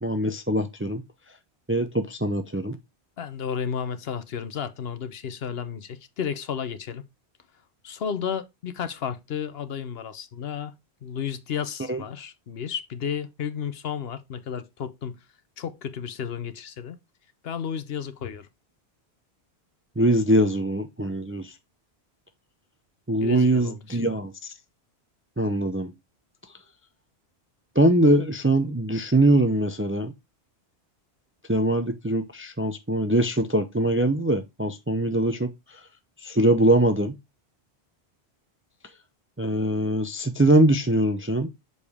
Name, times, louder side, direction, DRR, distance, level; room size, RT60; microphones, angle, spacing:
voice 1, 0.0-1.0 1.7-2.8 11.9-12.0 20.0-21.5 23.1-24.5 25.4-25.9 27.8-30.1 31.5-35.5 36.2-37.1 39.4-41.5, right 1 dB, 15° right, 0.4 m, -22 dB
voice 2, 3.2-7.1 7.8-10.7 11.0-15.2 15.6-17.0 17.4-18.5 23.2-24.0, left 7 dB, 70° left, 1.0 m, -32 dB
6.7 x 5.0 x 3.5 m
omnidirectional pair, 1.1 m